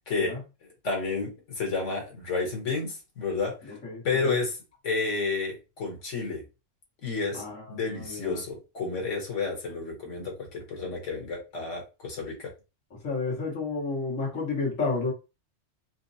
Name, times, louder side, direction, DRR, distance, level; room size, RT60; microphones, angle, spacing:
voice 1, 0.1-0.4 0.8-3.8 4.0-4.6 4.8-6.4 7.0-12.5, left 4 dB, 65° left, 1.6 m, -31 dB
voice 2, 3.7-4.4 7.3-8.4 12.9-15.1, left 3 dB, 85° left, 1.9 m, -31 dB
4.3 x 2.1 x 2.7 m
omnidirectional pair, 1.3 m